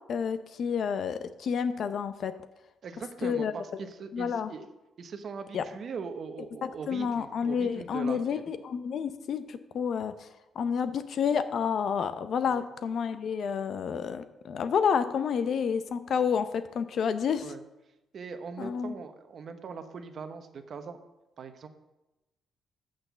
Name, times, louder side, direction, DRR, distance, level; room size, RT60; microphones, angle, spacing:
voice 1, 0.1-2.3 3.2-3.5 4.1-4.5 5.5-5.6 6.6-10.3 10.6-17.5 18.6-19.0, left 6 dB, 60° left, 11 dB, 0.6 m, -29 dB
voice 2, 2.8-4.7 5.0-8.4 12.4-12.7 17.4-17.6 18.1-21.0 21.4-21.7, right 5 dB, 55° right, 8 dB, 0.9 m, -41 dB
6.5 x 6.0 x 6.8 m, 0.98 s
cardioid pair, 90°, 0 cm